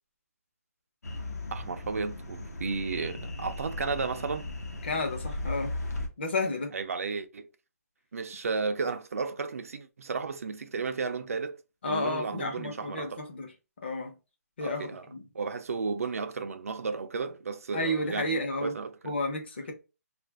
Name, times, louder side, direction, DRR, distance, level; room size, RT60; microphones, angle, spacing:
sound 1, 1.0-6.1, left 2 dB, 70° left, 0.9 m, -37 dB
voice 1, 1.5-4.5 6.7-7.5 8.1-11.6 11.8-13.2 14.6-15.1 15.3-18.4 18.6-19.0, right 4 dB, 60° right, 0.4 m, -33 dB
voice 2, 4.8-5.7 6.2-6.7 11.8-13.5 13.8-14.1 14.6-15.2 17.7-18.7 19.0-19.7, left 2 dB, 40° left, 0.8 m, -31 dB
2.7 x 2.5 x 3.4 m
hypercardioid pair, 175°, 9 cm